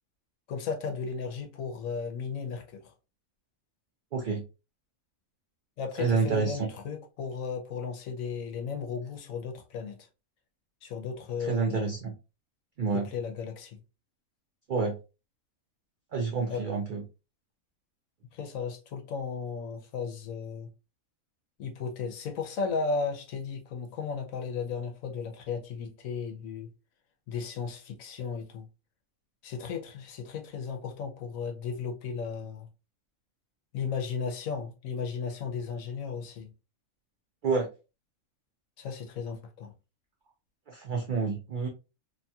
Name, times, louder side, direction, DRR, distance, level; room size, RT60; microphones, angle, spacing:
voice 1, 0.5-2.9 5.8-10.0 10.8-11.9 12.9-13.8 16.5-16.6 18.3-20.7 21.6-26.7 27.3-28.7 29.4-32.7 33.7-36.5 38.8-39.7, left 5 dB, 75° left, 1.0 m, -35 dB
voice 2, 4.1-4.4 6.0-6.7 11.4-12.1 12.8-13.1 14.7-15.0 16.1-17.0 37.4-37.7 40.7-41.7, right 5 dB, 75° right, 0.4 m, -28 dB
2.9 x 2.7 x 2.3 m
omnidirectional pair, 1.5 m